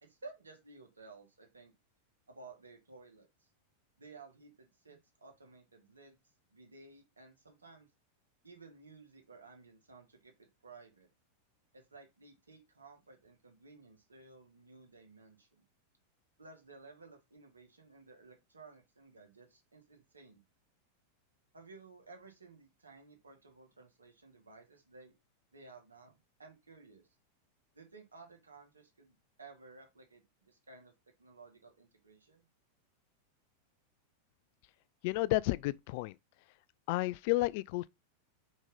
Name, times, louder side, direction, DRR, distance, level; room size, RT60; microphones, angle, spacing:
voice 1, 0.0-1.7 2.3-3.5 4.0-6.2 6.5-7.9 8.4-11.1 11.7-15.7 16.4-20.4 21.5-25.1 25.5-27.1 27.7-30.9 31.2-32.5, right 3 dB, 75° right, 2.0 m, -56 dB
voice 2, 35.0-36.2 36.9-37.9, left 19 dB, 50° left, 0.3 m, -31 dB
5.2 x 5.0 x 3.9 m
figure-of-eight pair, 90°, 0 cm